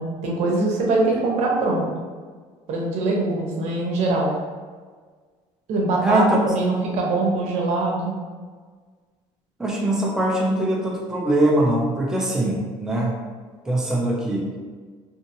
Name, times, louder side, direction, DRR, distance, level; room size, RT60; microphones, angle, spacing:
voice 1, 0.0-1.9 2.7-4.3 5.7-8.1, right 2 dB, 60° right, -2 dB, 0.7 m, -22 dB
voice 2, 6.0-6.4 9.6-13.1 13.7-14.5, right 1 dB, 5° right, -3 dB, 0.4 m, -22 dB
2.7 x 2.6 x 2.6 m, 1.5 s
cardioid pair, 155°, 13 cm